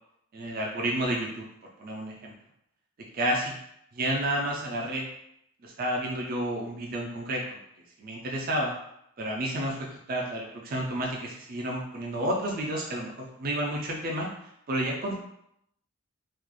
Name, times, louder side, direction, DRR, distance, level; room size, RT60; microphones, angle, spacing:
voice 1, 0.3-1.5 1.8-2.3 3.1-3.6 3.9-5.1 5.6-7.6 8.0-8.7 9.2-14.3 14.7-15.1, right 1 dB, 40° right, -2 dB, 0.4 m, -30 dB
3.1 x 2.4 x 3.7 m, 0.76 s
head